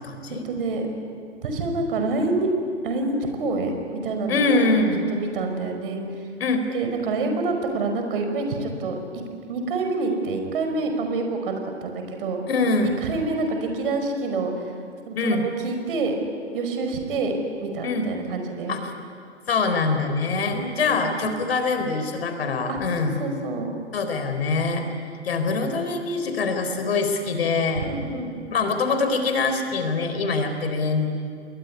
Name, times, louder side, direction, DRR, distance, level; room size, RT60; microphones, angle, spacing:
voice 1, 0.4-0.9 1.4-2.5 2.8-4.8 5.1-6.0 6.7-8.9 9.5-12.4 12.8-14.5 15.1-16.2 16.5-17.3 17.6-18.8 20.5-21.4 22.7-22.8 23.2-23.7 27.8-28.3, right 3 dB, 50° right, 5 dB, 5.3 m, -27 dB
voice 2, 4.3-5.1 6.4-6.6 12.5-12.9 15.2-15.5 17.8-18.1 18.7-18.9 19.5-23.2 23.9-24.8 25.2-27.9 28.5-31.1, left 3 dB, 60° left, 7 dB, 4.1 m, -24 dB
28.5 x 21.5 x 9.8 m, 2.3 s
figure-of-eight pair, 115°, 35 cm